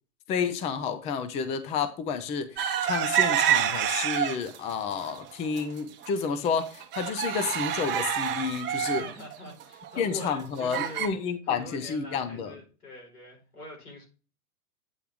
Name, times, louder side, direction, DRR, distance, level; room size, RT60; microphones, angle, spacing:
voice 1, 0.3-9.1 10.0-12.6, left 6 dB, 15° left, 0.5 m, -30 dB
sound 1, 2.6-4.6 5.0-5.6 6.0-6.1 6.4-11.1, right 9 dB, 25° right, 1.0 m, -28 dB
voice 2, 9.0-11.1 11.5-14.1, left 2 dB, 85° left, 4.1 m, -43 dB
8.7 x 3.4 x 5.8 m
hypercardioid pair, 115°, 44 cm